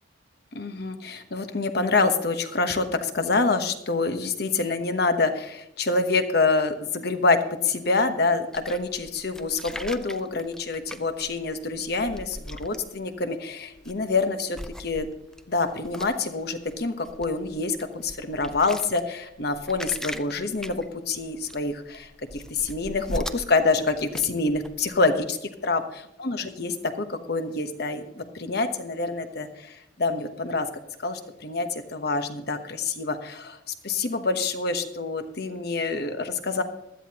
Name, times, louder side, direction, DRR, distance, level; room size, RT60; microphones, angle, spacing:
voice 1, 0.5-7.4 7.6-15.1 15.5-25.4 25.6-30.7 31.0-36.6, left 3 dB, 55° left, 8 dB, 1.0 m, -26 dB
sound 1, 8.5-13.3 13.7-14.2 14.5-25.3, equal, 5° left, 0.4 m, -40 dB
16.0 x 12.5 x 2.9 m, 0.83 s
head